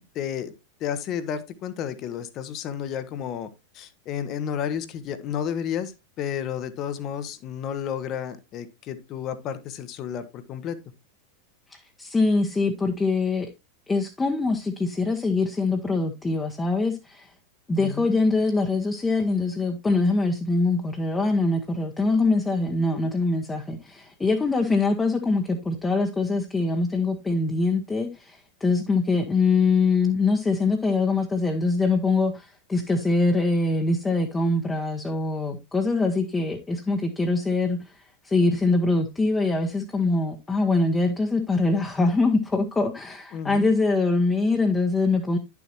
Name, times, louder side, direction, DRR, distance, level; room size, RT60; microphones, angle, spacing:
voice 1, 0.1-0.5 0.8-10.8 17.8-18.1 43.3-43.7, left 8 dB, 35° left, 1.0 m, -32 dB
voice 2, 11.7-13.5 13.9-17.3 17.7-37.8 38.2-45.4, left 3 dB, 10° left, 1.1 m, -23 dB
10.5 x 7.2 x 2.9 m
figure-of-eight pair, 90°, 0 cm